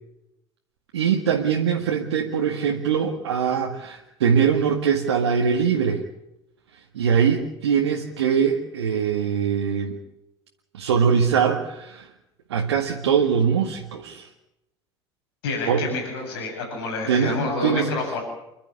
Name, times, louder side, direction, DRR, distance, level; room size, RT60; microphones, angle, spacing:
voice 1, 0.9-6.0 6.9-10.0 10.7-12.1 12.5-14.3 15.7-15.9 17.1-17.9, right 7 dB, 75° right, 1 dB, 2.0 m, -22 dB
voice 2, 15.4-18.2, left 3 dB, 70° left, 3 dB, 7.8 m, -28 dB
30.0 x 12.0 x 9.7 m, 0.89 s
figure-of-eight pair, 65°, 14 cm